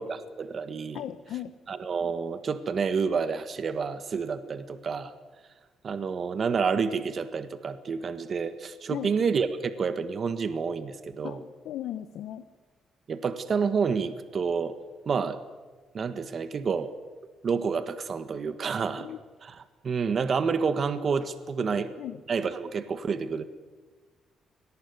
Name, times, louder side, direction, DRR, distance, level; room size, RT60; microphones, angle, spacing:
voice 1, 0.0-1.0 1.7-5.1 5.8-11.4 13.1-14.8 15.0-15.4 15.9-16.9 17.4-19.1 19.4-21.9 22.3-23.4, right 5 dB, 45° right, 11 dB, 1.7 m, -29 dB
voice 2, 0.9-1.5 8.9-9.1 11.2-12.4 19.0-19.2 21.7-22.2, left 11 dB, 80° left, 11 dB, 1.0 m, -37 dB
23.5 x 19.0 x 9.6 m, 1.3 s
cardioid pair, 90°, 0 cm